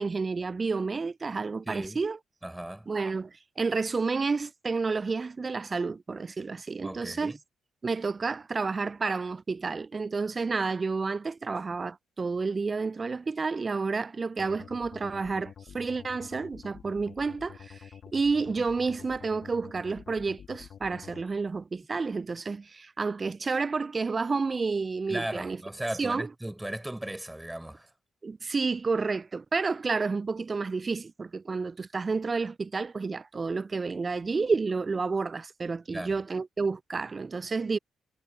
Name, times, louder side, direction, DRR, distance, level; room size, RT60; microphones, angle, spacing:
voice 1, 0.0-2.2 2.9-7.3 7.8-25.6 26.0-26.3 28.2-37.8, right 4 dB, 35° right, 0.3 m, -30 dB
voice 2, 1.7-2.0 2.4-2.9 6.8-7.4 25.1-27.9 35.9-36.2, right 1 dB, 10° right, 4.5 m, -36 dB
sound 1, 14.4-21.2, left 8 dB, 60° left, 1.2 m, -48 dB
hypercardioid pair, 45°, 0 cm